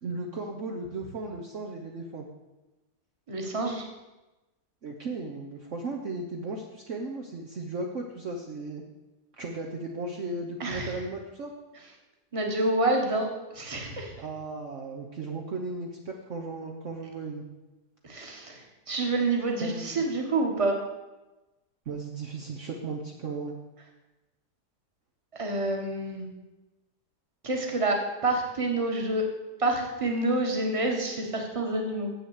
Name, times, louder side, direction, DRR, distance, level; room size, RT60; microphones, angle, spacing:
voice 1, 0.0-2.2 4.8-8.8 9.4-11.5 14.2-17.4 19.6-20.0 21.9-23.6, right 3 dB, 50° right, 0 dB, 1.2 m, -36 dB
voice 2, 3.3-3.9 10.6-11.0 12.3-13.3 13.5-14.2 18.0-20.8 25.3-26.3 27.4-29.2 29.6-32.1, right 2 dB, 20° right, 2 dB, 1.5 m, -28 dB
7.8 x 6.8 x 8.1 m, 1.1 s
omnidirectional pair, 1.8 m